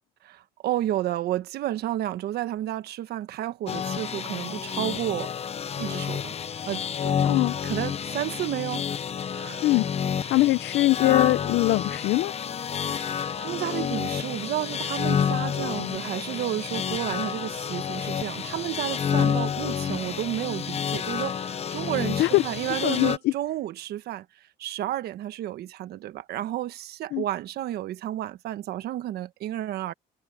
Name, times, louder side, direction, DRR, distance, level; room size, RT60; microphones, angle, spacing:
voice 1, 0.2-5.3 5.8-6.3 6.7-7.2 7.6-8.8 9.3-9.6 12.9-24.2 24.6-29.9, right 13 dB, 70° right, 1.3 m, -31 dB
sound 1, 3.7-23.2, left 7 dB, 40° left, 0.9 m, -29 dB
voice 2, 7.2-7.5 9.6-9.8 10.3-12.3 22.2-22.4 22.8-23.3 27.1-27.2, left 18 dB, 75° left, 0.7 m, -22 dB
cardioid pair, 110°, 17 cm